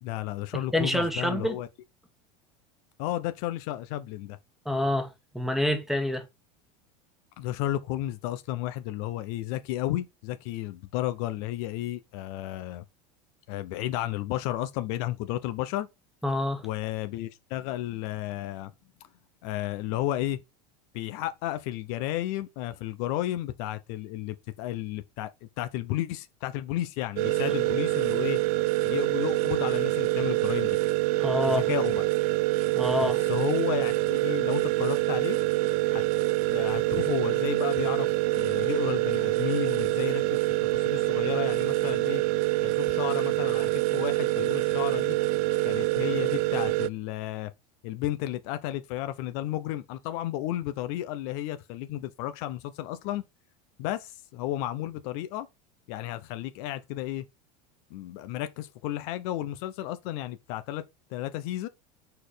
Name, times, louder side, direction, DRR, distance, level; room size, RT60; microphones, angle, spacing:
voice 1, 0.0-1.7 3.0-4.4 7.4-12.8 13.5-15.9 16.6-18.7 19.4-20.4 20.9-28.4 28.8-30.8 31.5-32.0 33.0-35.4 35.9-36.0 36.5-40.4 40.7-42.2 42.6-45.2 45.6-47.5 47.8-53.2 53.8-55.5 55.9-57.2 57.9-60.8 61.1-61.7, left 14 dB, 65° left, 0.8 m, -33 dB
voice 2, 0.5-1.6 4.6-5.1 5.3-6.2 16.2-16.6 31.2-31.6 32.7-33.2, left 1 dB, ahead, 1.5 m, -27 dB
sound 1, 27.2-46.9, right 19 dB, 65° right, 0.4 m, -26 dB
4.4 x 4.3 x 5.0 m
hypercardioid pair, 100°, 20 cm